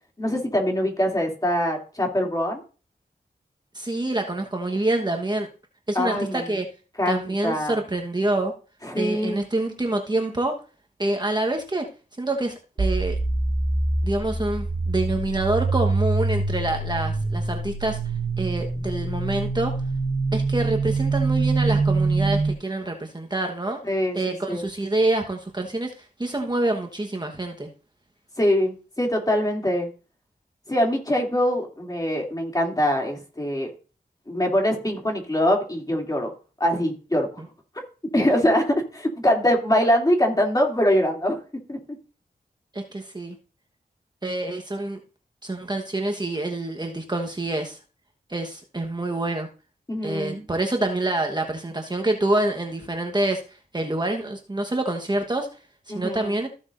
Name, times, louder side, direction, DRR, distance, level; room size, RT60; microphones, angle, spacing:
voice 1, 0.2-2.6 5.9-6.5 7.0-7.8 8.8-9.4 23.9-24.6 28.4-29.9 30.7-33.7 34.3-36.3 36.6-37.4 38.1-41.4 41.7-41.8 49.9-50.4 55.9-56.3, equal, 20° left, 0 dB, 2.9 m, -23 dB
voice 2, 3.7-5.5 5.9-6.6 7.0-8.5 9.0-10.6 11.0-11.9 12.2-13.2 14.0-18.0 18.4-19.7 20.3-23.8 24.1-27.7 42.7-43.4 44.2-45.0 45.4-47.8 48.3-49.5 50.0-55.6 55.9-56.5, right 2 dB, 25° right, 3 dB, 1.2 m, -26 dB
sound 1, 12.8-22.5, right 3 dB, 60° right, 1.6 m, -24 dB
14.5 x 7.0 x 2.6 m, 0.36 s
wide cardioid pair, 70°, 17 cm